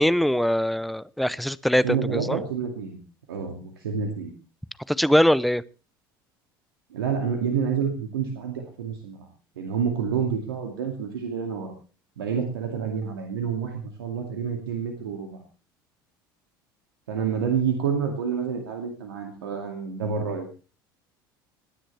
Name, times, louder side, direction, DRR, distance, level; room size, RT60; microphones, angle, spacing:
voice 1, 0.0-2.4 4.9-5.6, equal, ahead, 19 dB, 0.6 m, -22 dB
voice 2, 1.8-3.0 3.3-4.3 6.9-9.3 9.6-11.7 12.2-15.4 17.1-20.5, right 6 dB, 85° right, 3 dB, 2.2 m, -28 dB
20.0 x 10.0 x 3.3 m, 0.35 s
hypercardioid pair, 75°, 12 cm